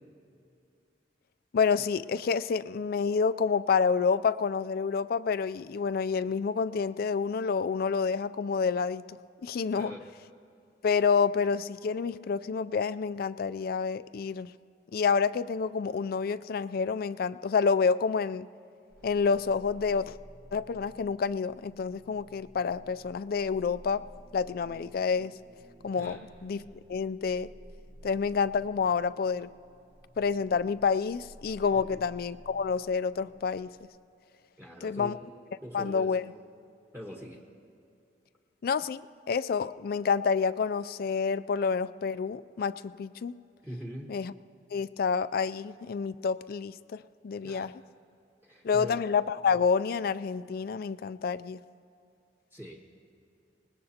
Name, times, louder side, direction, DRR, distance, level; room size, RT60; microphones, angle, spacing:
voice 1, 1.5-9.2 9.4-10.0 10.8-14.5 14.9-18.5 19.0-20.2 20.5-24.1 24.3-25.4 25.8-26.6 26.9-27.5 28.0-29.5 30.2-33.7 34.8-35.2 35.7-36.3 38.6-43.4 44.1-44.3 44.7-47.7 48.6-51.6, left 5 dB, 55° left, 15 dB, 0.3 m, -28 dB
sound 1, 18.9-33.8, equal, 60° right, 1.3 m, -53 dB
voice 2, 34.6-35.3 35.6-36.2 36.9-37.5 43.6-44.2 47.4-47.7 48.4-49.0 52.5-52.8, equal, 10° right, 0 dB, 1.2 m, -42 dB
24.5 x 20.0 x 2.9 m, 2.6 s
head